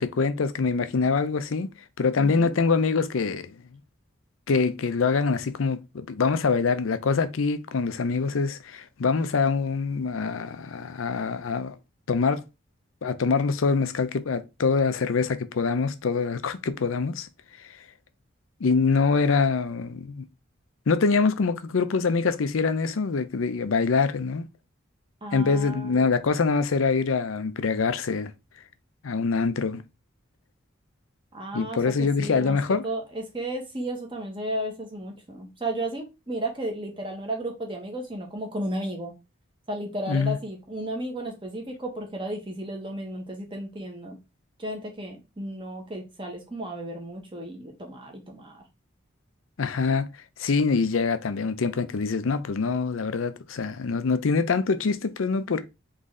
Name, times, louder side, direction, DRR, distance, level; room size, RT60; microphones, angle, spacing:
voice 1, 0.0-3.6 4.5-11.8 12.1-12.4 13.0-17.3 17.6-17.8 18.6-20.2 20.9-24.4 25.3-28.3 29.0-29.8 31.5-32.8 40.1-40.4 49.6-50.1 50.4-55.6, left 4 dB, 85° left, 0.5 m, -24 dB
voice 2, 2.2-2.5 25.2-26.2 31.3-32.6 32.8-39.1 39.7-44.2 44.6-48.6, right 1 dB, 25° right, 1.2 m, -34 dB
4.0 x 3.2 x 3.7 m
head